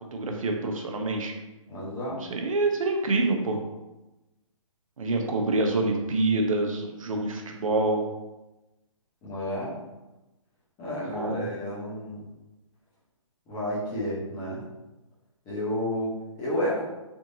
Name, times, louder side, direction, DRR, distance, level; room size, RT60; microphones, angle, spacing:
voice 1, 0.1-1.3 2.2-3.6 5.0-8.0 11.0-11.5, right 2 dB, 80° right, 2 dB, 0.7 m, -26 dB
voice 2, 1.7-2.2 9.2-9.7 10.8-12.2 13.5-14.6 15.5-16.8, equal, 15° left, -8 dB, 0.9 m, -31 dB
3.5 x 2.7 x 2.7 m, 1.0 s
hypercardioid pair, 160°, 17 cm